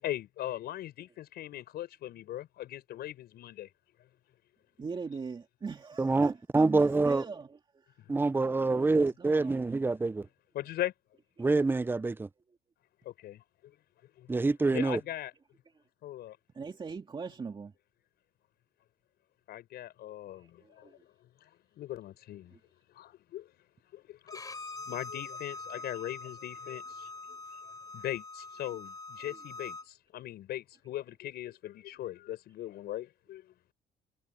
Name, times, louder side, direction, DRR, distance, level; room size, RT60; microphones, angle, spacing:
voice 1, 0.0-3.7 8.0-8.2 10.5-10.9 13.0-13.7 14.2-14.3 14.7-15.3 16.0-16.4 19.5-20.9 21.8-22.5 22.9-23.5 23.9-24.4 24.9-27.1 27.9-33.5, left 13 dB, 70° left, 6.1 m, -39 dB
voice 2, 4.8-7.6 8.6-9.9 16.5-17.7 20.6-20.9, right 5 dB, 30° right, 2.3 m, -41 dB
voice 3, 6.0-7.2 8.1-10.3 11.4-12.3 14.3-15.0, right 3 dB, 10° right, 0.6 m, -26 dB
Bowed string instrument, 24.3-29.9, left 3 dB, 20° left, 3.4 m, -44 dB
cardioid pair, 110°, 17 cm